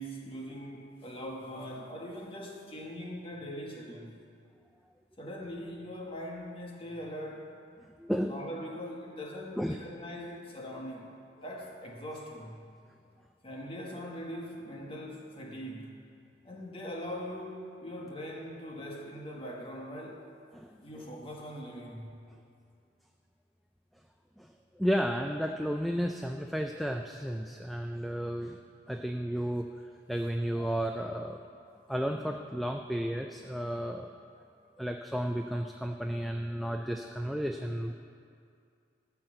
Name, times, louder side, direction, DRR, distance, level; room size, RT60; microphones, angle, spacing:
voice 1, 0.0-4.2 5.2-7.5 8.2-11.2 11.4-12.7 13.4-15.9 16.4-20.2 20.8-22.2, equal, 30° left, -1 dB, 1.5 m, -41 dB
voice 2, 8.0-8.3 9.6-9.8 20.5-20.7 24.4-24.5 24.8-28.6 28.9-29.7 30.1-31.4 31.9-34.1 34.8-37.9, equal, ahead, 4 dB, 0.3 m, -32 dB
13.5 x 5.9 x 7.8 m, 2.3 s
head